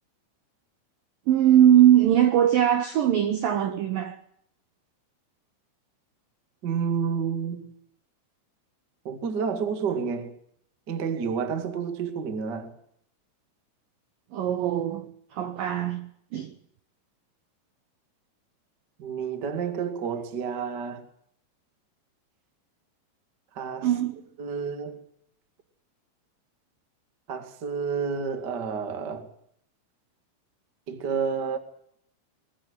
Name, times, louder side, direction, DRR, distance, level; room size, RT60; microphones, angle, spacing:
voice 1, 1.3-4.2 14.3-16.5 23.8-24.2, right 11 dB, 75° right, 2.1 m, -21 dB
voice 2, 6.6-7.7 9.0-10.3 10.9-12.8 19.0-21.0 23.5-23.9 24.4-25.0 27.3-29.3 30.9-31.6, right 6 dB, 50° right, 1.2 m, -30 dB
21.5 x 15.0 x 9.5 m
omnidirectional pair, 5.7 m